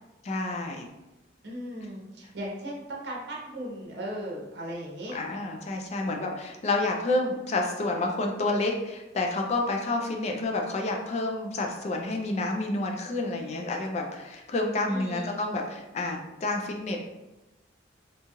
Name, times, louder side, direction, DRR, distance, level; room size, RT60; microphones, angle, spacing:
voice 1, 0.2-0.9 5.1-17.1, left 2 dB, 35° left, 2 dB, 0.3 m, -29 dB
voice 2, 1.4-5.1 14.9-15.4, equal, 60° right, -2 dB, 0.7 m, -37 dB
2.7 x 2.3 x 2.9 m, 1.0 s
head